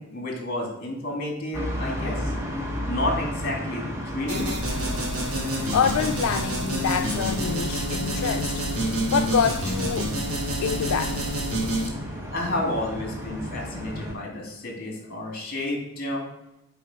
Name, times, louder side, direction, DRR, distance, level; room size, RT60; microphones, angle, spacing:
voice 1, 0.0-2.3 2.8-3.8 4.1-4.5 12.3-16.2, left 1 dB, 45° left, -1 dB, 2.2 m, -30 dB
sound 1, 1.5-14.1, equal, 10° right, 0.9 m, -33 dB
sound 2, 4.3-11.9, right 1 dB, 75° right, 1.8 m, -28 dB
voice 2, 5.7-10.1 10.6-11.2, left 7 dB, 80° left, 6 dB, 0.4 m, -26 dB
7.0 x 4.5 x 4.8 m, 0.86 s
head